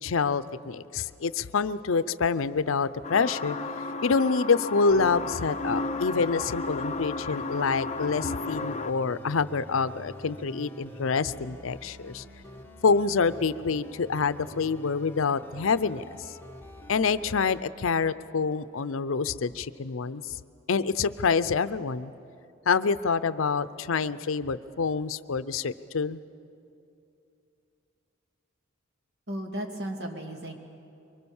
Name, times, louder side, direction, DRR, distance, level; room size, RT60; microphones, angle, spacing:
voice 1, 0.0-3.6 4.0-12.2 12.8-16.0 16.9-20.4 20.7-22.1 22.7-26.2, left 5 dB, 75° left, 14 dB, 0.6 m, -26 dB
sound 1, 3.0-8.9, left 3 dB, 35° left, 0.7 m, -33 dB
sound 2, 4.9-17.6, left 1 dB, 10° left, 1.3 m, -47 dB
voice 2, 29.3-30.5, right 1 dB, 55° right, 2 dB, 2.6 m, -34 dB
24.0 x 24.0 x 7.1 m, 2.7 s
head